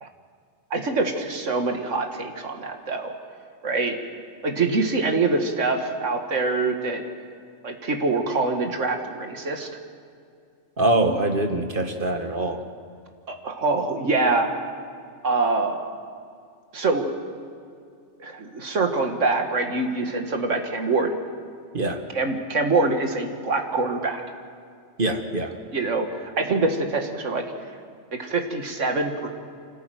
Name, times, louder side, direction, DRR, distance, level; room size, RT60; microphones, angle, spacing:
voice 1, 0.7-3.1 3.6-4.0 4.4-7.0 7.6-9.7 13.3-14.5 15.2-15.9 16.7-17.1 18.2-21.1 22.1-24.2 25.7-27.4 28.1-29.3, right 3 dB, 75° right, 4 dB, 2.2 m, -24 dB
voice 2, 10.8-12.6 21.7-22.1 25.0-25.6, right 2 dB, 45° right, 5 dB, 1.7 m, -24 dB
26.0 x 14.0 x 9.2 m, 2.3 s
omnidirectional pair, 1.3 m